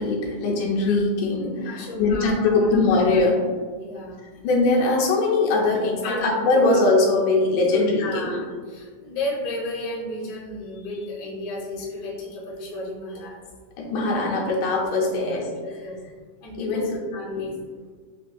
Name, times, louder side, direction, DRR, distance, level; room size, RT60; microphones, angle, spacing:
voice 1, 0.0-3.4 4.4-8.0 13.8-15.5 16.6-16.8 17.4-17.5, left 3 dB, 80° left, -3 dB, 2.3 m, -21 dB
voice 2, 0.6-1.0 1.6-3.0 3.8-4.3 6.0-6.8 7.6-13.4 15.1-16.0 16.4-17.6, left 1 dB, 65° left, -6 dB, 1.0 m, -33 dB
6.4 x 2.3 x 2.6 m, 1.5 s
omnidirectional pair, 3.6 m